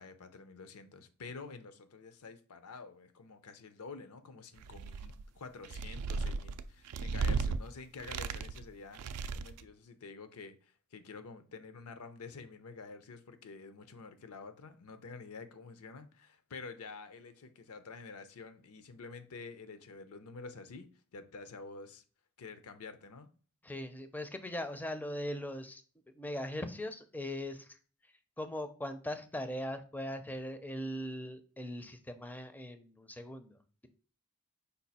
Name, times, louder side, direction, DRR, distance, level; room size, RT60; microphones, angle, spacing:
voice 1, 0.0-22.0 22.4-23.3, left 4 dB, 75° left, 0.6 m, -49 dB
sound 1, 4.6-5.2 5.6-7.6 8.0-8.6 8.9-9.6, right 4 dB, 85° right, 0.4 m, -35 dB
voice 2, 23.6-25.8 26.2-33.6, left 1 dB, 10° left, 0.4 m, -40 dB
5.3 x 2.3 x 4.1 m
head